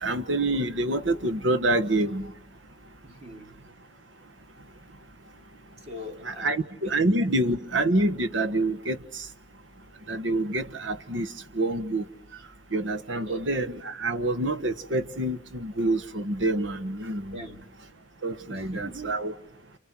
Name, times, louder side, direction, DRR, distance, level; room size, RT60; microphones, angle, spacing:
voice 1, 0.0-2.3 6.2-9.0 10.1-11.3 11.5-12.0 12.7-17.3 18.2-19.3, right 2 dB, 80° right, 1.4 m, -27 dB
voice 2, 3.0-3.6 5.9-6.9 13.1-13.5 17.3-17.6 18.5-19.2, equal, 35° right, 2.9 m, -42 dB
29.5 x 28.5 x 6.2 m
head